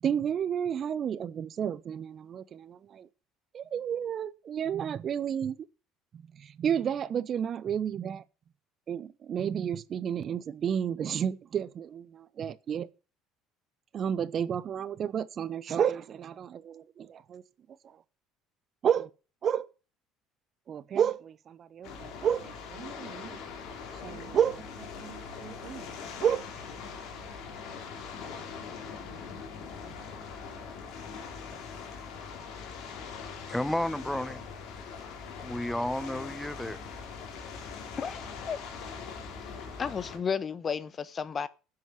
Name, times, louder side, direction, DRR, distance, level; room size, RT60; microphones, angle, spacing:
voice 1, 0.0-3.1 3.5-5.6 6.1-8.2 8.9-12.9 13.9-17.4 17.8-18.0 18.8-19.1 19.4-19.7 20.7-23.4 24.0-25.9 26.2-26.5, right 8 dB, 45° right, 0.8 m, -31 dB
sound 1, 21.8-40.2, left 5 dB, 60° left, 3.7 m, -42 dB
voice 2, 33.5-34.4 35.4-36.8, left 1 dB, 5° left, 1.0 m, -32 dB
voice 3, 38.0-38.6 39.8-41.5, left 6 dB, 35° left, 1.1 m, -33 dB
11.0 x 7.9 x 7.3 m
figure-of-eight pair, 60°, 0 cm